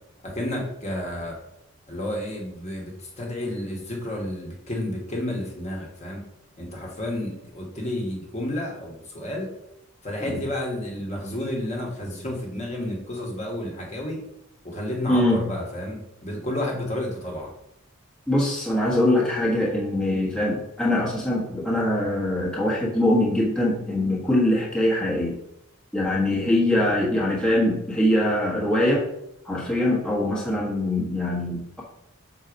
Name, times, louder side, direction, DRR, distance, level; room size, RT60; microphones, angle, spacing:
voice 1, 0.2-1.4 1.9-6.2 6.6-9.5 10.0-14.2 14.6-17.5, left 1 dB, 30° left, -1 dB, 1.3 m, -31 dB
voice 2, 15.1-15.4 18.3-25.3 25.9-29.0 29.4-31.8, left 1 dB, 5° left, -5 dB, 1.3 m, -23 dB
6.4 x 4.0 x 5.1 m, 0.82 s
head